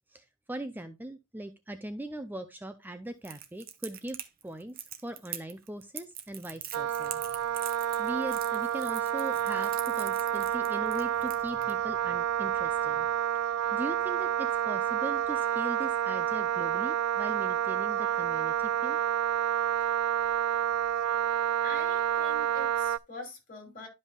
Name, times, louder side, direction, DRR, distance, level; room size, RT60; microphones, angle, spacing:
voice 1, 0.1-4.2 4.4-13.1 13.7-19.0, right 1 dB, 10° right, 0.5 m, -40 dB
Crackle, 3.2-11.7, right 10 dB, 45° right, 0.9 m, -42 dB
Wind instrument woodwind instrument, 6.7-23.0, right 10 dB, 85° right, 0.3 m, -29 dB
voice 2, 21.6-23.9, left 2 dB, 40° left, 2.8 m, -44 dB
12.0 x 5.4 x 2.3 m
head